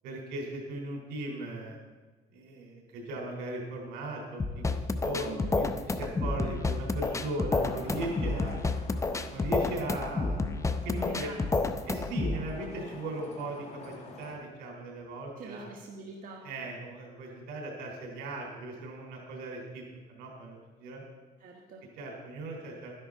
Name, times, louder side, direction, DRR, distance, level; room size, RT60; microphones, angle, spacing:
voice 1, 0.0-1.8 2.3-4.6 5.0-8.6 9.3-10.4 10.8-11.3 11.9-15.7 16.4-19.8 20.1-21.0 22.0-22.9, right 1 dB, 90° right, 0 dB, 3.7 m, -38 dB
sound 1, 4.4-12.4, left 3 dB, 15° left, 0.7 m, -30 dB
voice 2, 5.2-5.7 10.9-11.4 11.7-11.8 15.4-16.5 21.4-21.8, right 3 dB, 55° right, -1 dB, 1.4 m, -43 dB
Traffic noise roadway noise, 7.5-14.3, left 3 dB, 40° left, 2.0 m, -48 dB
13.0 x 10.5 x 3.8 m, 1.3 s
cardioid pair, 110°, 17 cm